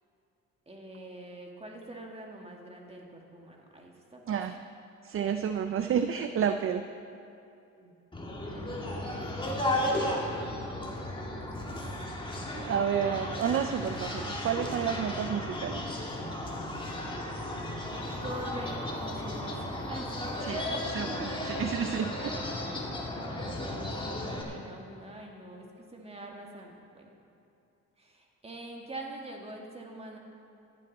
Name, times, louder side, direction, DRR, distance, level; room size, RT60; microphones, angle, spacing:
voice 1, 0.7-4.4 7.8-7.9 8.6-10.0 10.5-11.5 11.8-12.0 12.5-12.8 18.1-21.3 23.1-27.1 28.0-30.2, right 1 dB, 20° right, 0 dB, 2.1 m, -45 dB
voice 2, 4.3-4.6 5.0-6.9 12.7-15.9 20.4-20.6 20.9-22.4, right 8 dB, 45° right, 8 dB, 0.5 m, -30 dB
sound 1, 8.1-24.4, left 1 dB, 15° left, 2.4 m, -34 dB
14.5 x 11.0 x 4.2 m, 2.8 s
cardioid pair, 90°, 30 cm